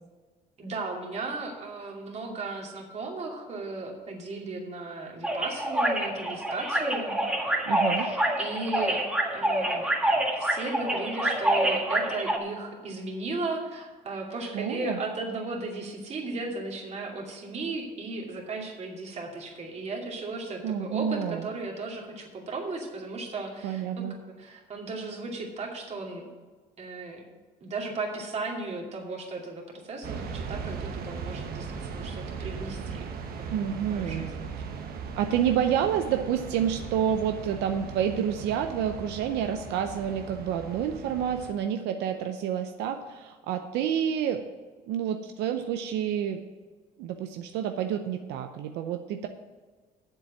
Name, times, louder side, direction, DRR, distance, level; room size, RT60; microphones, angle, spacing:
voice 1, 0.6-7.1 8.0-9.1 9.3-9.9 10.4-26.3 26.8-27.2 27.6-33.1 33.4-34.5, right 3 dB, 40° right, 0 dB, 2.6 m, -36 dB
sound 1, 5.2-12.4, right 1 dB, 5° right, 1.6 m, -27 dB
voice 2, 7.7-8.1 14.5-15.0 20.6-21.5 23.6-24.1 33.5-34.3 35.2-44.5 44.9-46.4 47.0-49.3, right 9 dB, 85° right, 6 dB, 0.7 m, -29 dB
sound 2, 30.0-41.5, right 5 dB, 65° right, 1.3 m, -38 dB
7.7 x 7.6 x 7.6 m, 1.4 s
cardioid pair, 110°, 17 cm